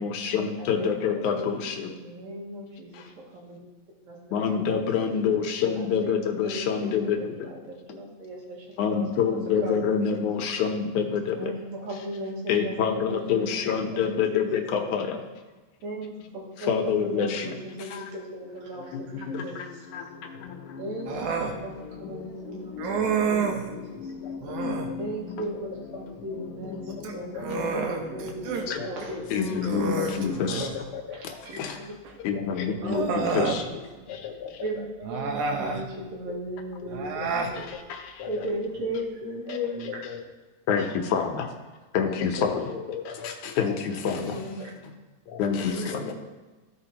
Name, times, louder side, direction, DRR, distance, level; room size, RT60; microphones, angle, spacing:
voice 1, 0.0-1.7 4.3-7.2 8.8-11.4 12.5-15.0 16.7-17.5 24.5-24.9 28.7-28.8 29.3-30.7 31.6-31.7 32.3-33.6 40.7-40.8 41.1-41.4 41.9-42.6 43.6-44.2 45.4-45.7, left 7 dB, 90° left, 4 dB, 2.3 m, -26 dB
voice 2, 0.6-3.6 4.0-5.1 5.7-9.0 9.6-9.9 11.3-13.5 13.7-14.2 14.8-15.1 15.8-20.0 20.8-24.3 25.0-27.3 27.5-30.5 31.1-32.4 32.8-33.1 33.3-34.1 34.6-37.6 37.9-40.0 42.2-42.3 44.1-44.7 45.5-46.1, right 1 dB, 70° right, -3 dB, 3.0 m, -37 dB
Human voice, 21.1-21.6 22.8-23.7 24.4-25.0 26.9-28.7 29.0-29.1 29.6-30.8 32.0-32.1 32.8-33.6 35.0-35.9 36.9-37.6, right 5 dB, 90° right, 2.2 m, -29 dB
voice 3, 23.9-24.9 26.9-27.7 28.7-29.4 29.7-31.4 32.3-32.9 34.1-34.9 36.8-37.4 38.2-38.5 39.7-40.2 42.0-43.3 43.7-43.8 45.3-46.1, left 7 dB, 60° left, 0 dB, 1.5 m, -40 dB
15.0 x 5.1 x 2.9 m, 1.2 s
omnidirectional pair, 3.3 m